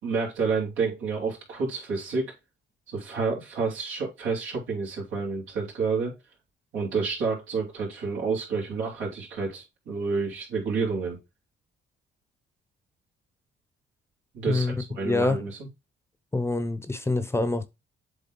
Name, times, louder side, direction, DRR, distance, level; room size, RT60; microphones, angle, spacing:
voice 1, 0.0-2.3 2.9-6.1 6.7-11.2 14.3-15.7, right 4 dB, 80° right, 3.2 m, -29 dB
voice 2, 14.5-15.5 16.3-17.7, left 2 dB, 15° left, 0.7 m, -26 dB
7.8 x 3.4 x 3.8 m
cardioid pair, 90°, 20 cm